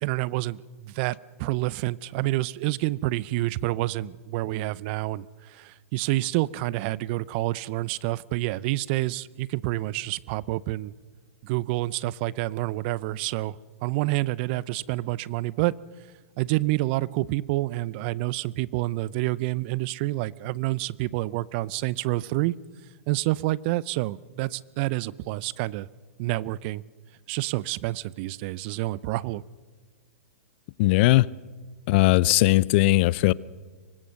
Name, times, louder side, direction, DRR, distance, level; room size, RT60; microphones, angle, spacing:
voice 1, 0.0-10.9 11.4-13.6 13.8-15.7 16.4-22.6 23.1-25.9 26.2-26.8 27.3-29.4, right 18 dB, 45° right, 0.6 m, -28 dB
voice 2, 30.8-31.3 31.9-33.3, left 19 dB, 50° left, 0.6 m, -19 dB
24.5 x 20.0 x 6.5 m
hypercardioid pair, 120°, 8 cm